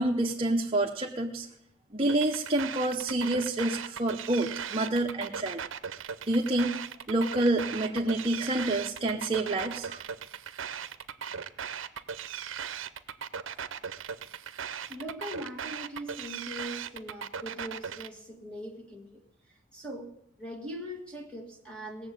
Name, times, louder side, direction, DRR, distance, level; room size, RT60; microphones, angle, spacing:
voice 1, 0.0-1.5 1.9-5.6 6.3-6.8 7.1-10.0, right 2 dB, 30° right, 0.8 m, -28 dB
sound 1, 2.1-18.1, right 7 dB, 70° right, 0.7 m, -38 dB
voice 2, 14.9-20.1 20.4-22.1, equal, 5° left, 1.7 m, -41 dB
19.0 x 7.2 x 8.3 m
head